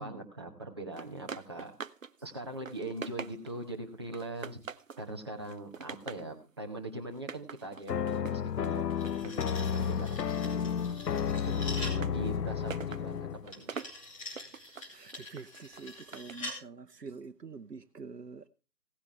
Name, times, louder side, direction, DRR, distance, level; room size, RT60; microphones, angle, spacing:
voice 1, 0.0-1.7 2.2-4.6 5.0-10.7 11.5-13.7, right 1 dB, 15° right, 1.1 m, -41 dB
sound 1, 1.0-2.1 2.4-3.7 4.1-5.1 5.4-6.3 7.1-10.1 10.4-16.5, right 6 dB, 55° right, 0.6 m, -45 dB
sound 2, 7.9-13.5, left 7 dB, 80° left, 0.6 m, -32 dB
sound 3, 8.7-12.1 13.5-16.6, left 2 dB, 20° left, 2.5 m, -45 dB
voice 2, 11.6-12.6 14.9-18.5, right 5 dB, 80° right, 0.9 m, -46 dB
17.0 x 9.6 x 3.3 m
figure-of-eight pair, 160°, 48 cm